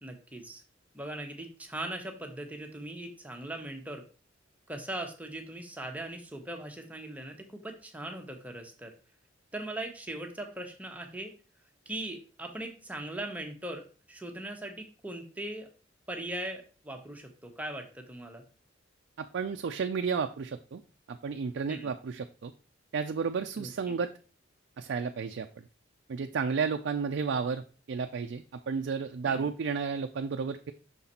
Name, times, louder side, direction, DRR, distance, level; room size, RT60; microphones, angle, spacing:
voice 1, 0.0-0.6 0.9-4.0 4.7-8.9 9.5-11.3 11.9-15.7 16.1-18.4 21.7-21.9 23.6-24.0 29.2-29.5, right 1 dB, 10° right, 3 dB, 0.9 m, -40 dB
voice 2, 19.2-20.8 21.1-22.5 22.9-24.1 24.8-25.5 26.1-30.7, right 5 dB, 60° right, 6 dB, 0.4 m, -32 dB
6.0 x 4.0 x 4.2 m, 0.35 s
head